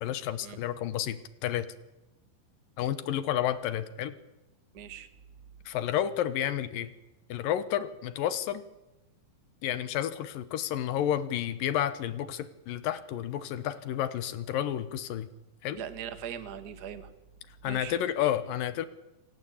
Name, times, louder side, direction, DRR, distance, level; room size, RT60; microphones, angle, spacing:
voice 1, 0.0-1.7 2.8-4.1 5.7-6.9 7.3-8.6 9.6-15.3 15.6-15.8 17.6-18.9, left 11 dB, 70° left, 13 dB, 2.6 m, -31 dB
voice 2, 4.7-5.1 15.8-17.1 17.7-18.0, right 9 dB, 55° right, 11 dB, 1.1 m, -40 dB
27.0 x 15.5 x 8.5 m, 1.0 s
omnidirectional pair, 4.3 m